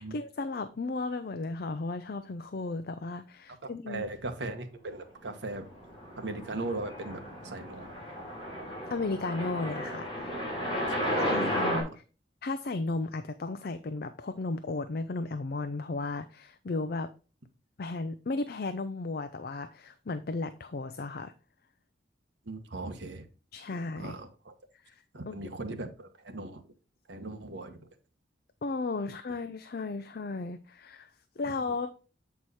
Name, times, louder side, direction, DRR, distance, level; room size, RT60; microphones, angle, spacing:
voice 1, 0.0-4.0 8.9-10.4 11.2-12.0 12.4-17.1 17.8-21.3 23.5-24.2 24.8-25.4 28.6-31.1 31.4-31.9, left 3 dB, 55° left, 0.5 m, -35 dB
voice 2, 3.9-5.7 6.2-7.9 10.7-12.0 22.4-23.3 24.0-24.5 25.1-26.6 27.1-27.9, right 2 dB, 75° right, 1.2 m, -39 dB
sound 1, 5.7-11.8, equal, 30° left, 3.1 m, -33 dB
8.0 x 4.7 x 4.1 m
head